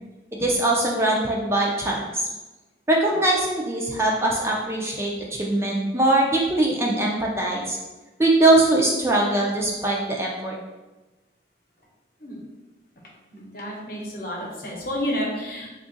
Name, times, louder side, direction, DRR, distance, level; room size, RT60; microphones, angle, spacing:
voice 1, 0.4-2.2 2.9-7.8 8.2-10.6, right 2 dB, 15° right, -2 dB, 0.4 m, -22 dB
voice 2, 13.3-15.7, equal, 55° left, -2 dB, 0.9 m, -30 dB
3.6 x 2.4 x 3.9 m, 1.1 s
head